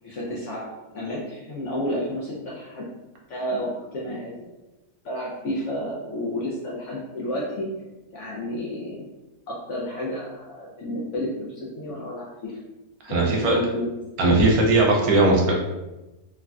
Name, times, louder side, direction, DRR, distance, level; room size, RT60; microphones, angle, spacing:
voice 1, 0.0-2.8 3.3-4.5 5.0-7.7 8.1-9.1 9.5-12.6 13.1-14.0, left 1 dB, 70° left, -5 dB, 0.7 m, -31 dB
voice 2, 13.0-13.6 14.2-15.5, right 2 dB, 70° right, -1 dB, 1.0 m, -18 dB
3.2 x 2.5 x 2.2 m, 1.1 s
omnidirectional pair, 1.7 m